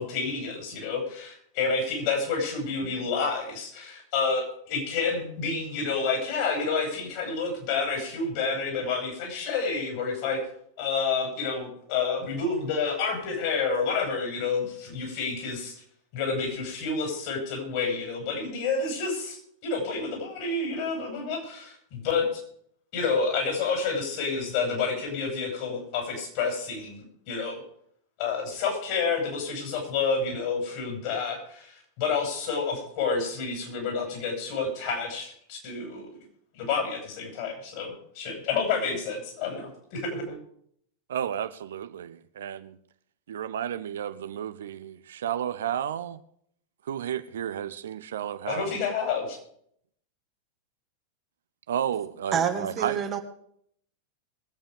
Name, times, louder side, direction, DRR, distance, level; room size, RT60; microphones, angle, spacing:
voice 1, 0.0-10.4 10.8-15.8 16.1-22.4 22.9-27.6 28.2-36.1 36.5-40.4 48.5-49.4, left 4 dB, 50° left, 7.0 m, -29 dB
voice 2, 41.1-42.8 43.3-46.2 46.9-48.8 51.7-53.0, right 9 dB, 60° right, 0.7 m, -32 dB
voice 3, 52.3-53.2, right 8 dB, 25° right, 1.6 m, -27 dB
21.5 x 8.8 x 5.2 m
figure-of-eight pair, 90°, 0 cm